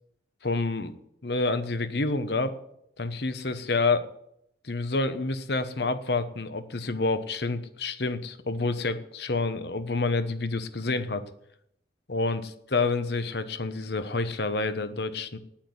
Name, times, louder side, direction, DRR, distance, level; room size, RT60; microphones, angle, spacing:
voice 1, 0.4-0.9 1.2-2.6 3.0-4.1 4.6-11.2 12.1-15.4, left 3 dB, 60° left, 11 dB, 1.0 m, -28 dB
9.5 x 8.9 x 9.5 m, 0.75 s
head